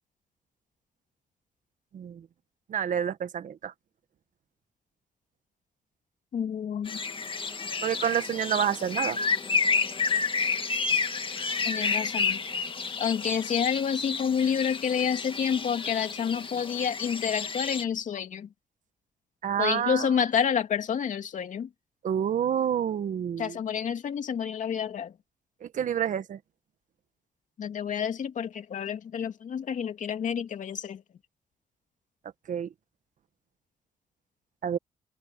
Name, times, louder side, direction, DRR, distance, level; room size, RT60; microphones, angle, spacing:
voice 1, 1.9-2.2 2.7-3.7 7.8-9.2 19.4-20.1 22.0-23.6 25.6-26.4 32.5-32.7 34.6-34.8, right 9 dB, 70° right, 1.6 m, -28 dB
voice 2, 6.3-7.0 11.6-12.7 13.0-18.5 19.6-21.7 23.4-25.1 27.6-31.0, left 7 dB, 65° left, 2.7 m, -29 dB
sound 1, 6.9-17.8, left 5 dB, 40° left, 2.1 m, -30 dB
open air
supercardioid pair, 60°, 14 cm